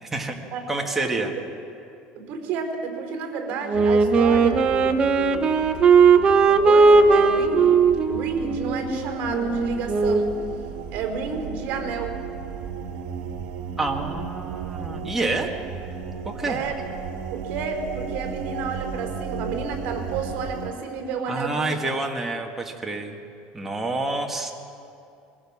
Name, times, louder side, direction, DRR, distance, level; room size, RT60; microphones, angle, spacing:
voice 1, 0.0-0.4 0.7-1.3 13.8-15.5 16.3-16.6 21.3-23.2 23.5-24.5, right 2 dB, 10° right, 1 dB, 1.8 m, -28 dB
voice 2, 1.0-1.4 2.2-5.7 6.1-7.8 8.1-10.4 10.9-12.2 16.4-16.7 17.3-21.8, right 5 dB, 50° right, 3 dB, 4.5 m, -31 dB
Wind instrument woodwind instrument, 3.7-10.4, right 4 dB, 30° right, 1.0 m, -18 dB
sound 1, 3.7-20.7, right 6 dB, 80° right, 1.5 m, -35 dB
22.5 x 16.0 x 7.2 m, 2.6 s
cardioid pair, 145°, 3 cm